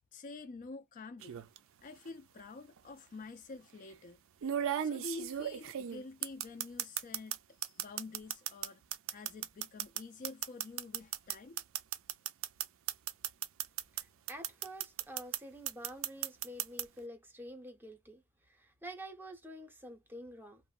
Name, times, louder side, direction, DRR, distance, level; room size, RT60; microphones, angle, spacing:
voice 1, 0.1-1.4 1.8-4.2 4.8-8.8 9.1-11.6, left 3 dB, 35° left, 0.3 m, -48 dB
sound 1, 1.2-1.6 2.8-2.9 4.4-7.4 7.6-14.0 14.3-15.4 15.7-16.8, right 10 dB, 60° right, 0.4 m, -35 dB
voice 2, 13.9-20.6, equal, 10° right, 0.7 m, -48 dB
3.0 x 2.1 x 2.3 m
head